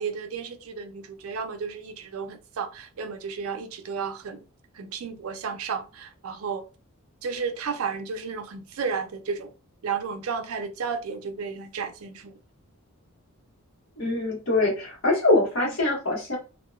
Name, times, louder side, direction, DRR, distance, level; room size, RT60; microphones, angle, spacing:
voice 1, 0.0-4.4 4.7-6.6 7.2-9.5 9.8-12.4, right 5 dB, 70° right, 0.4 m, -33 dB
voice 2, 14.0-16.4, left 2 dB, 60° left, 1.2 m, -23 dB
2.7 x 2.1 x 2.3 m
head